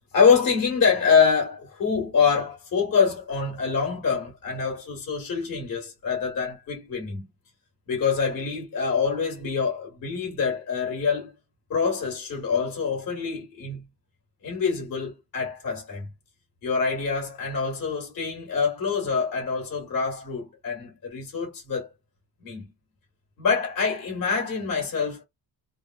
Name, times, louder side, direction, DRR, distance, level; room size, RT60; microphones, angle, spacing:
voice 1, 0.1-7.3 7.9-11.3 11.7-13.8 14.4-16.1 16.6-21.9 22.4-22.7 23.4-25.2, left 5 dB, 45° left, 1.7 m, -25 dB
3.5 x 2.1 x 2.5 m
cardioid pair, 140°, 46 cm